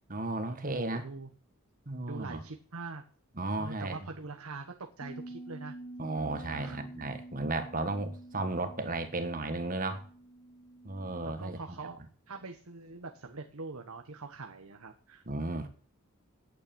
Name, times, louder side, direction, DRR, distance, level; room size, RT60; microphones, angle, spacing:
voice 1, 0.1-1.1 1.9-2.4 3.4-4.0 6.0-10.0 10.8-11.6 15.3-15.7, right 2 dB, 40° right, 9 dB, 1.5 m, -34 dB
voice 2, 0.8-1.3 2.1-3.0 3.6-5.7 6.5-6.8 11.0-15.2, right 3 dB, 75° right, 4 dB, 1.2 m, -43 dB
Bass guitar, 5.0-11.3, right 2 dB, 35° left, 2.2 m, -48 dB
9.6 x 9.0 x 7.0 m, 0.44 s
head